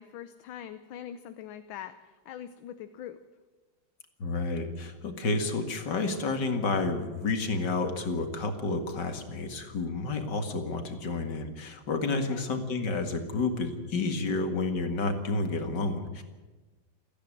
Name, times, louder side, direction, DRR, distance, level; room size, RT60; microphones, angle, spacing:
voice 1, 0.0-3.2 12.3-12.5, left 10 dB, 80° left, 10 dB, 1.6 m, -43 dB
voice 2, 4.2-16.2, left 3 dB, 60° left, 6 dB, 2.6 m, -30 dB
28.5 x 10.0 x 9.9 m, 1.2 s
omnidirectional pair, 2.2 m